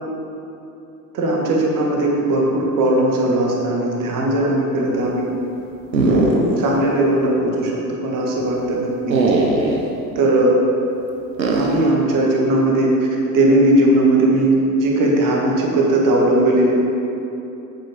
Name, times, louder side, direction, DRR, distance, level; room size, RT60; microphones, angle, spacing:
voice 1, 1.1-5.3 6.0-9.2 10.2-10.5 11.5-12.9 13.3-16.7, right 1 dB, 40° right, -2 dB, 1.8 m, -18 dB
sound 1, 5.9-6.8 7.1-7.2 9.1-9.9 11.4-11.9, right 2 dB, 85° right, 0.9 m, -19 dB
8.3 x 7.4 x 3.7 m, 2.9 s
figure-of-eight pair, 60°, 49 cm